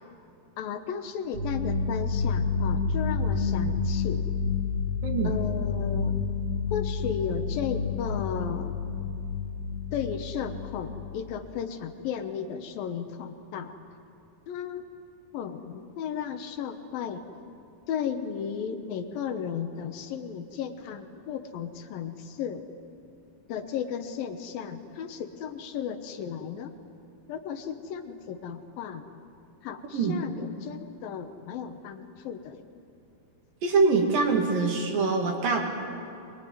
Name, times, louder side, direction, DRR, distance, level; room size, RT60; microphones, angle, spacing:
voice 1, 0.6-4.2 5.2-6.2 6.7-8.8 9.9-13.7 14.5-14.9 15.3-17.2 17.9-22.7 23.5-26.7 27.3-29.1 29.6-32.6, left 7 dB, 70° left, 7 dB, 2.7 m, -34 dB
sound 1, 1.3-11.0, left 4 dB, 85° right, 10.0 m, -29 dB
voice 2, 33.6-35.6, right 4 dB, 65° right, 1 dB, 4.0 m, -24 dB
23.0 x 22.5 x 9.5 m, 2.6 s
omnidirectional pair, 4.4 m